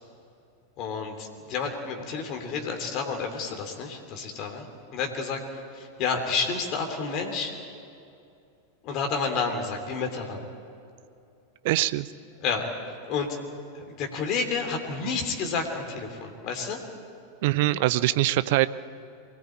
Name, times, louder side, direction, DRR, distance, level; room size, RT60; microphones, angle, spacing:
voice 1, 0.8-7.5 8.8-10.4 12.4-12.7 13.1-13.4 13.7-16.8, left 5 dB, 40° left, 4 dB, 3.1 m, -30 dB
voice 2, 11.6-12.1 17.4-18.7, right 17 dB, 50° right, 16 dB, 0.7 m, -23 dB
24.0 x 19.5 x 8.6 m, 2.6 s
figure-of-eight pair, 90°, 0 cm